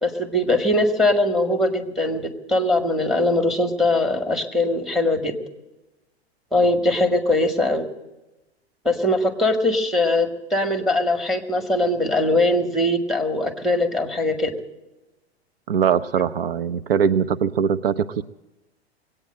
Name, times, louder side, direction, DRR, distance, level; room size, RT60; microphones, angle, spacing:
voice 1, 0.0-5.4 6.5-7.9 8.8-14.5, left 2 dB, ahead, 6 dB, 1.8 m, -21 dB
voice 2, 15.7-18.2, right 7 dB, 65° right, 13 dB, 0.6 m, -21 dB
21.0 x 9.0 x 7.7 m, 1.0 s
figure-of-eight pair, 100°, 32 cm